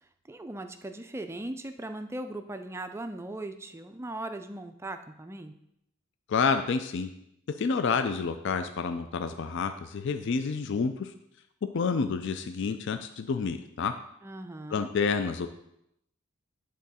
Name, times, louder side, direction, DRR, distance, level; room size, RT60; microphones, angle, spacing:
voice 1, 0.3-5.5 14.2-14.9, right 1 dB, 10° right, 8 dB, 0.3 m, -39 dB
voice 2, 6.3-7.1 7.6-11.1 11.7-13.9 14.7-15.5, left 5 dB, 60° left, 9 dB, 0.4 m, -29 dB
10.5 x 3.7 x 4.1 m, 0.80 s
head